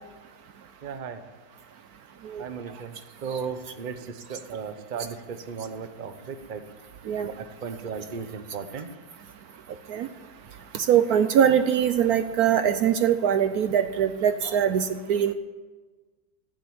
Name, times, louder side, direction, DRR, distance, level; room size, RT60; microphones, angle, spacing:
voice 1, 0.8-1.2 2.4-6.6 7.2-8.9, right 6 dB, 40° right, 9 dB, 0.7 m, -36 dB
voice 2, 10.7-15.3, right 9 dB, 65° right, 10 dB, 1.0 m, -22 dB
14.5 x 7.8 x 8.8 m, 1.4 s
omnidirectional pair, 1.9 m